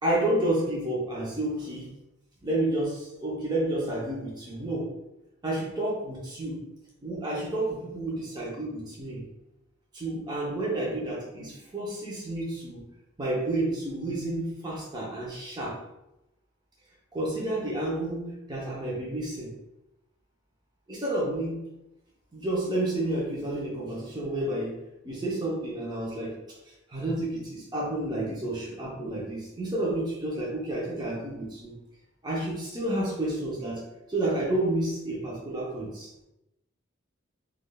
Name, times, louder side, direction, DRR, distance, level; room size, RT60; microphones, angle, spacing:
voice 1, 0.0-1.9 2.4-4.9 5.4-6.6 7.0-9.2 9.9-12.8 13.2-15.7 17.1-19.5 20.9-21.6 22.3-24.8 25.0-26.4 26.9-31.7 32.2-33.8 34.1-36.1, right 1 dB, 20° right, -5 dB, 0.7 m, -30 dB
3.6 x 2.4 x 2.2 m, 0.90 s
head